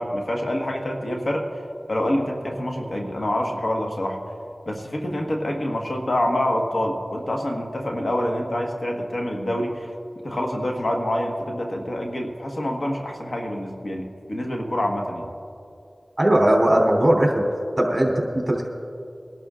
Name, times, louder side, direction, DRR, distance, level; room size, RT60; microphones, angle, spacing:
voice 1, 0.0-1.4 1.9-4.2 4.7-9.9 10.2-15.3, left 1 dB, 65° left, 1 dB, 1.5 m, -26 dB
voice 2, 16.2-17.4 17.8-18.7, right 1 dB, 30° right, -1 dB, 3.1 m, -19 dB
24.0 x 12.0 x 2.5 m, 2.5 s
cardioid pair, 40°, 0 cm